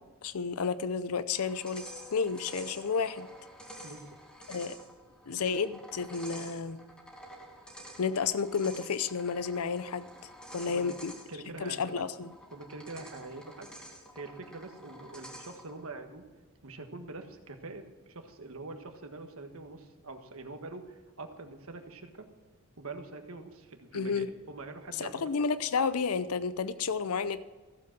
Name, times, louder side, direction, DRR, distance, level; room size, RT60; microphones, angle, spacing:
voice 1, 0.2-1.8 2.1-3.3 4.5-4.7 5.3-6.8 8.0-10.1 10.5-11.1 11.6-12.3 23.9-24.3 25.0-27.4, left 5 dB, 75° left, 14 dB, 0.6 m, -31 dB
sound 1, 1.3-15.8, equal, 5° left, 2.3 m, -49 dB
voice 2, 11.3-12.1 12.5-13.7 14.1-16.2 16.6-22.3 22.8-25.3, right 3 dB, 65° right, 6 dB, 1.5 m, -44 dB
15.0 x 7.7 x 6.0 m, 1.3 s
head